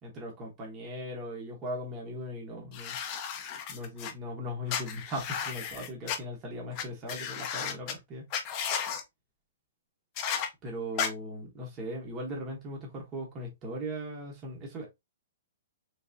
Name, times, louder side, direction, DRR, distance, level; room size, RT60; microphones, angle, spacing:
voice 1, 0.0-3.0 3.7-8.3 10.6-14.9, equal, 15° right, 0.9 m, -38 dB
sound 1, 2.7-4.1 4.7-6.2 6.8-6.9 7.1-7.9 8.3-9.0 10.2-10.5 11.0-11.1, left 7 dB, 25° left, 0.6 m, -34 dB
3.3 x 3.3 x 2.6 m
hypercardioid pair, 175°, 0 cm